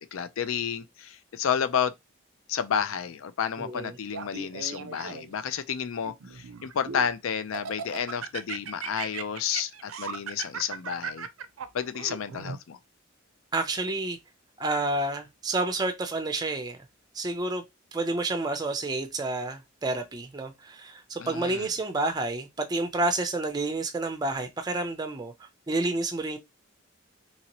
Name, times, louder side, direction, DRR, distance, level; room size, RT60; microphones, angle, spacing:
voice 1, 0.1-1.9 2.5-11.3 11.7-12.8 21.2-21.7, left 7 dB, 80° left, 0.4 m, -31 dB
voice 2, 3.6-4.0 13.5-14.2 14.6-16.8 17.1-17.6 17.9-26.4, right 2 dB, 20° right, 0.4 m, -29 dB
Laughter, 4.1-5.4 6.0-7.1 7.5-12.6, right 6 dB, 85° right, 0.4 m, -37 dB
2.9 x 2.8 x 2.9 m
head